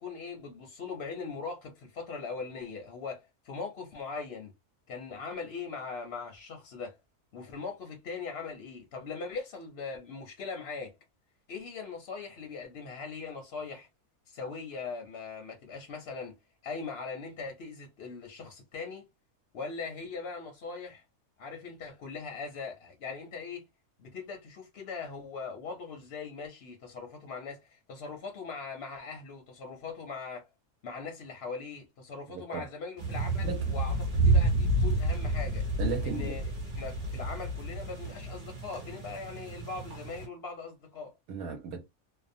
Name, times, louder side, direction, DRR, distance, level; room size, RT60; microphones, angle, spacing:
voice 1, 0.0-4.5 4.9-7.0 7.3-11.0 11.5-13.9 14.3-16.4 16.6-19.1 19.5-21.0 21.4-23.6 24.0-30.5 30.8-35.7 36.0-36.4 36.8-41.1, left 4 dB, 60° left, 0.7 m, -40 dB
voice 2, 32.3-32.7 33.4-33.7 35.8-36.4 41.3-41.8, right 6 dB, 80° right, 1.2 m, -36 dB
sound 1, 33.0-40.3, right 2 dB, 30° right, 1.1 m, -30 dB
2.7 x 2.0 x 2.6 m
omnidirectional pair, 1.7 m